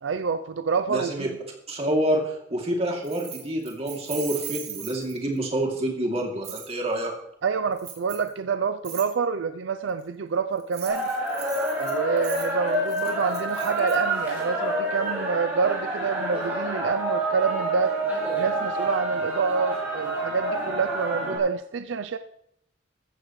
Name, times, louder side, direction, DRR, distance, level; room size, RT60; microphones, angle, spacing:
voice 1, 0.0-1.3 7.4-11.1 11.8-18.0 18.3-22.2, right 5 dB, 75° right, 11 dB, 0.5 m, -27 dB
voice 2, 0.9-1.3 1.7-7.1, right 1 dB, 30° right, 0 dB, 2.7 m, -27 dB
Keys jangling, 3.0-5.4 6.4-6.7 7.8-8.3 8.8-9.1 10.6-14.0, right 10 dB, 55° right, 2.9 m, -39 dB
sound 1, 10.9-21.4, right 1 dB, 10° right, 6.4 m, -28 dB
15.0 x 14.0 x 3.2 m, 0.77 s
head